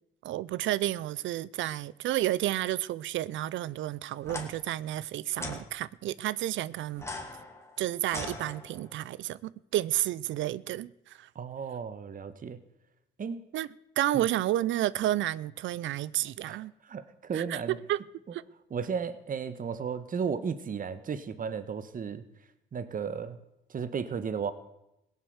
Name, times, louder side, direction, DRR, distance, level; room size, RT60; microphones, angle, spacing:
voice 1, 0.2-7.1 7.8-11.3 13.5-13.7 14.0-16.7 17.3-18.0 18.3-18.4, right 13 dB, 75° right, 0.5 m, -31 dB
sound 1, 4.2-4.5 5.4-5.6 6.9-9.0, left 2 dB, 15° left, 2.6 m, -40 dB
voice 2, 11.3-12.6 13.2-13.5 14.1-14.3 16.5-17.8 18.7-22.2 22.7-23.4 23.7-24.5, right 6 dB, 45° right, 1.2 m, -34 dB
16.5 x 8.2 x 8.0 m
cardioid pair, 90°, 20 cm